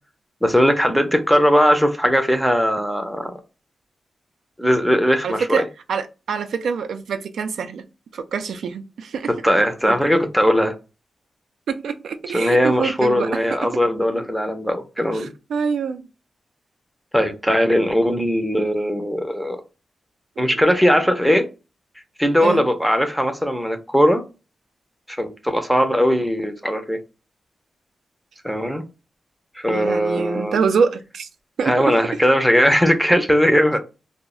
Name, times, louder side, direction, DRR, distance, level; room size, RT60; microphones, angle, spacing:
voice 1, 0.4-3.3 4.6-5.6 9.3-10.7 12.3-15.3 17.1-19.6 20.4-21.5 22.2-24.2 25.1-27.0 28.4-28.9 29.6-30.6 31.6-33.8, equal, ahead, 0.4 m, -19 dB
voice 2, 5.2-7.8 8.1-9.3 11.7-13.7 15.1-16.0 20.4-20.5 22.4-22.6 29.7-31.3 31.6-31.9, right 6 dB, 85° right, 0.3 m, -25 dB
2.2 x 2.0 x 3.6 m
wide cardioid pair, 145°, 0 cm